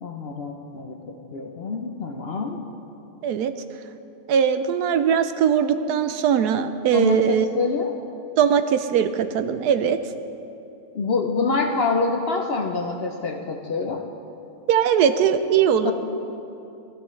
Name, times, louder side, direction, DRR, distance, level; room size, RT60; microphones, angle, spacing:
voice 1, 0.0-2.6 6.9-8.0 10.9-14.0 15.8-15.9, left 4 dB, 50° left, 3 dB, 0.8 m, -26 dB
voice 2, 3.2-3.5 4.3-7.4 8.4-10.0 14.7-15.9, right 8 dB, 90° right, 10 dB, 1.2 m, -20 dB
18.0 x 12.5 x 3.2 m, 2.8 s
omnidirectional pair, 1.6 m